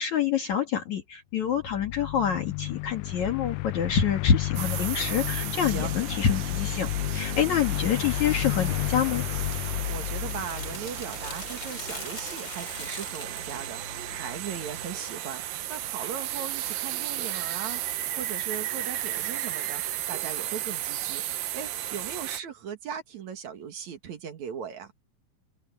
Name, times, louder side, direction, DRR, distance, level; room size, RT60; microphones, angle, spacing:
voice 1, 0.0-9.3, left 8 dB, 60° left, 3.2 m, -27 dB
sound 1, 1.5-11.7, left 17 dB, 85° left, 1.7 m, -32 dB
sound 2, 4.6-22.4, right 13 dB, 75° right, 2.7 m, -34 dB
sound 3, 9.6-15.0, left 3 dB, 30° left, 4.7 m, -42 dB
voice 2, 9.7-24.9, right 7 dB, 60° right, 2.7 m, -39 dB
omnidirectional pair, 4.1 m